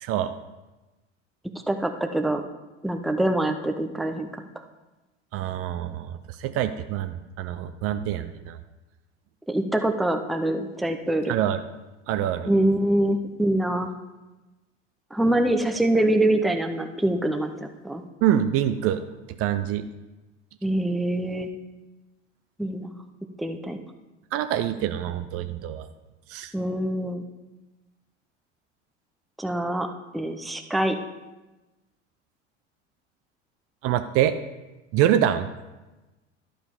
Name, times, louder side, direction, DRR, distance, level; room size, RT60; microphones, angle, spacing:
voice 1, 0.0-0.3 5.3-8.6 11.3-11.6 12.1-12.5 18.2-19.0 19.4-19.9 24.3-25.9 26.3-26.5 33.8-34.3 34.9-35.5, right 11 dB, 40° right, 10 dB, 0.6 m, -25 dB
voice 2, 1.7-2.4 2.8-4.3 9.5-11.3 12.5-13.9 15.1-18.0 20.6-21.5 22.6-22.9 23.4-23.8 26.5-27.2 29.4-29.9 30.1-31.0, right 1 dB, ahead, 5 dB, 0.6 m, -24 dB
11.5 x 5.0 x 5.4 m, 1.1 s
figure-of-eight pair, 75°, 36 cm